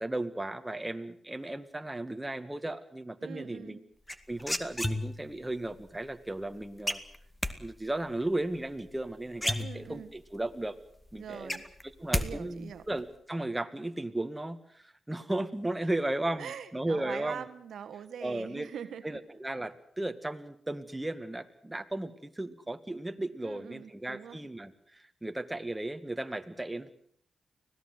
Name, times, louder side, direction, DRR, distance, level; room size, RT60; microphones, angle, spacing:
voice 1, 0.0-3.8 4.3-7.0 7.6-10.8 11.1-11.6 12.0-17.5 18.2-18.7 19.0-26.9, right 1 dB, 15° right, 8 dB, 2.2 m, -35 dB
voice 2, 3.2-3.8 9.6-10.1 11.2-11.6 12.1-12.8 16.4-19.2 23.4-24.4, right 8 dB, 80° right, 10 dB, 1.5 m, -43 dB
sound 1, 4.1-5.4 6.9-7.5 9.0-9.1 9.3-10.2 10.6-10.7 11.0-12.3 12.5-13.0, left 1 dB, 10° left, 2.2 m, -32 dB
25.0 x 17.5 x 8.0 m, 0.64 s
supercardioid pair, 50°, 0 cm